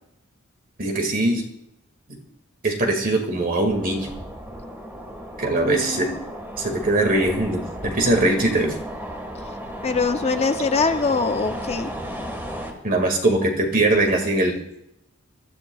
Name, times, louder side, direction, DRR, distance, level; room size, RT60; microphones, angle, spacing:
voice 1, 0.8-1.4 2.1-2.2 2.6-4.1 5.4-6.1 6.6-8.8 12.8-14.6, right 2 dB, 45° right, 2 dB, 2.1 m, -21 dB
sound 1, 3.7-12.7, equal, 10° right, 1.6 m, -34 dB
voice 2, 5.5-6.2 9.8-11.9, left 4 dB, 30° left, 7 dB, 0.6 m, -23 dB
22.0 x 13.5 x 2.4 m, 0.81 s
head